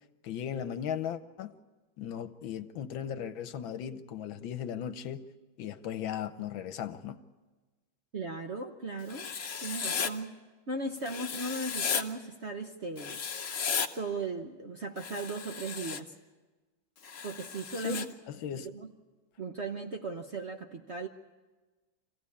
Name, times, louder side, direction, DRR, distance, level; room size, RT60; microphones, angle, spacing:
voice 1, 0.2-1.5 2.0-5.3 5.6-7.2 17.8-18.7, left 9 dB, 75° left, 1.6 m, -37 dB
voice 2, 8.1-9.3 9.6-10.4 10.7-13.2 13.9-16.1 17.2-18.1 18.7-18.9 19.4-21.1, right 3 dB, 45° right, 0.9 m, -37 dB
Writing, 9.1-10.1 11.0-12.0 13.0-13.9 15.0-16.0 17.0-18.0, left 6 dB, 50° left, 1.1 m, -34 dB
25.5 x 16.0 x 8.5 m
omnidirectional pair, 2.2 m